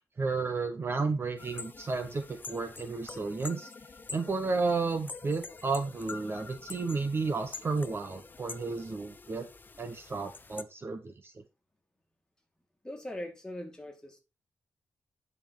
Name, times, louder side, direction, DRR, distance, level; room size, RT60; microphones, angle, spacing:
voice 1, 0.2-3.7 4.1-9.5 9.8-11.3, right 4 dB, 35° right, 0.9 m, -32 dB
sound 1, 1.4-10.6, left 4 dB, 25° left, 0.6 m, -46 dB
voice 2, 12.8-14.2, left 1 dB, 10° left, 2.3 m, -41 dB
9.7 x 5.4 x 4.6 m
wide cardioid pair, 140°, 7 cm